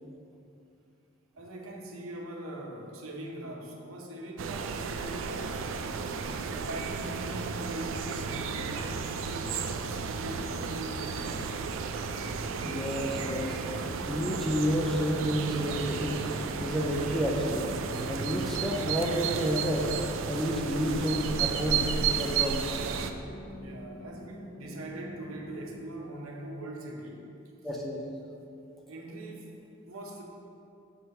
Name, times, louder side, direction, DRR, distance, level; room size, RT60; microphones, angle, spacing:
voice 1, 1.3-6.2 6.4-11.5 23.5-27.3 28.9-29.5 29.8-30.2, right 1 dB, 80° right, 0 dB, 0.8 m, -41 dB
sound 1, 4.4-23.1, right 6 dB, 65° right, 0.3 m, -33 dB
sound 2, 12.0-25.8, left 1 dB, 70° left, 1.2 m, -46 dB
voice 2, 12.6-13.6 14.1-16.2 16.6-17.7 18.1-19.9 20.2-22.7 27.6-28.0, equal, ahead, -2 dB, 0.4 m, -30 dB
5.7 x 3.2 x 5.6 m, 2.6 s
head